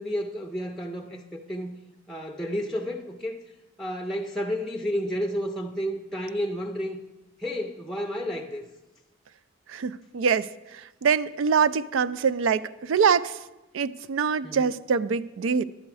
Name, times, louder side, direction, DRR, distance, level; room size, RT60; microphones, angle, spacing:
voice 1, 0.0-1.8 2.1-3.4 3.8-7.0 7.4-8.7 14.4-14.7, equal, ahead, 0.5 m, -31 dB
voice 2, 9.7-13.4 13.7-15.6, right 6 dB, 75° right, 0.4 m, -24 dB
11.0 x 7.8 x 4.8 m
head